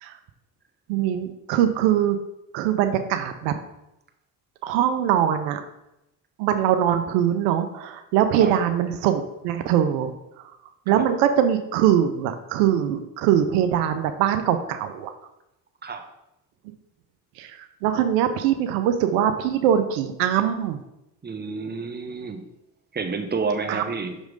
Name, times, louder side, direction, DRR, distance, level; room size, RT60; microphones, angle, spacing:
voice 1, 0.9-2.2 2.5-3.5 4.6-5.6 6.4-10.1 10.9-15.1 17.4-20.8 23.7-23.8, right 10 dB, 85° right, 8 dB, 0.6 m, -22 dB
voice 2, 21.2-22.4 22.9-24.2, right 4 dB, 20° right, 6 dB, 0.9 m, -29 dB
6.3 x 3.1 x 5.2 m, 0.88 s
supercardioid pair, 65°, 45 cm